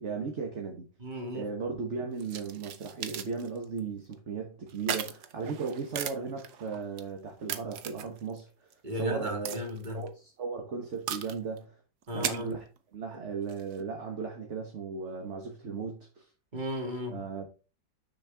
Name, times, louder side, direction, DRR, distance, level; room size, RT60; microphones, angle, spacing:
voice 1, 0.0-0.9 1.3-8.5 8.9-9.6 9.9-11.7 12.1-12.6 12.9-16.2 17.1-17.5, right 5 dB, 40° right, 1.2 m, -36 dB
voice 2, 1.0-1.5 8.8-10.0 12.1-12.5 16.5-17.2, left 1 dB, 25° right, 2.1 m, -35 dB
sound 1, 2.2-3.8 4.1-4.2 4.7-7.0 7.5-8.4 8.7-8.8 9.5-10.1 11.1-11.6 12.0-12.8 13.4-13.8, right 9 dB, 65° right, 1.2 m, -37 dB
6.5 x 6.5 x 3.4 m
omnidirectional pair, 2.2 m